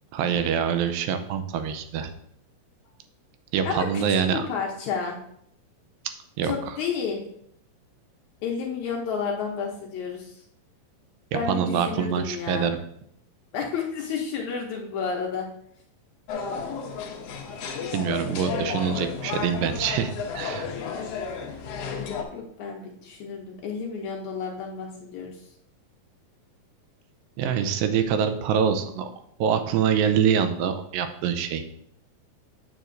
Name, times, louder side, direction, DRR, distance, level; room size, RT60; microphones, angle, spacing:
voice 1, 0.1-2.1 3.5-4.4 6.4-6.7 11.3-12.8 17.9-20.7 27.4-29.1 29.4-31.6, right 8 dB, 90° right, 8 dB, 2.4 m, -25 dB
voice 2, 3.7-5.2 6.4-7.2 8.4-10.4 11.3-12.7 13.5-15.5 22.3-25.3, left 6 dB, 70° left, 0 dB, 1.9 m, -31 dB
sound 1, 16.3-22.2, left 6 dB, 90° left, 1.4 m, -32 dB
8.1 x 7.5 x 2.6 m, 0.70 s
omnidirectional pair, 4.1 m